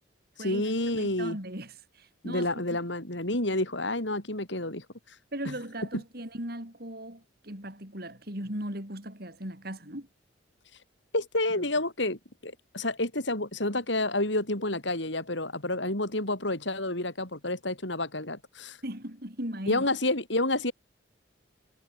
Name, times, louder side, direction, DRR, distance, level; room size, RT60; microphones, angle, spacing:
voice 1, 0.4-1.4 2.2-4.8 11.1-18.8 19.7-20.7, left 2 dB, 70° left, 6.3 m, -29 dB
voice 2, 1.0-2.5 5.3-10.1 11.6-11.7 18.8-19.9, right 1 dB, 50° right, 6.7 m, -38 dB
head